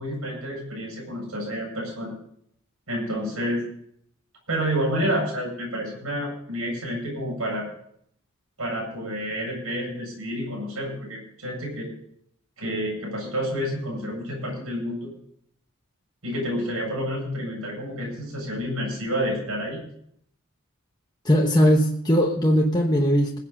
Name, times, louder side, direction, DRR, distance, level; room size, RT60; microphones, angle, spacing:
voice 1, 0.0-2.1 2.9-3.6 4.5-7.7 8.6-11.9 12.6-15.1 16.2-19.8, equal, 70° right, -2 dB, 8.0 m, -29 dB
voice 2, 21.2-23.4, equal, 20° left, -1 dB, 1.1 m, -19 dB
20.5 x 8.2 x 5.5 m, 0.68 s
head